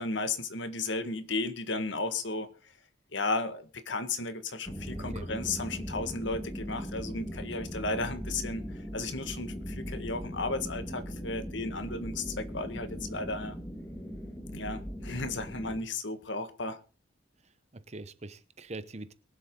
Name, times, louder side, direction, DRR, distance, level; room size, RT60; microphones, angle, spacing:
voice 1, 0.0-2.5 3.1-8.6 8.9-13.6 14.5-16.8, left 3 dB, 75° left, 1.7 m, -34 dB
sound 1, 4.7-15.8, equal, 10° left, 1.5 m, -39 dB
voice 2, 4.9-5.3 17.4-19.1, right 2 dB, 35° right, 0.9 m, -44 dB
22.5 x 7.7 x 3.8 m
head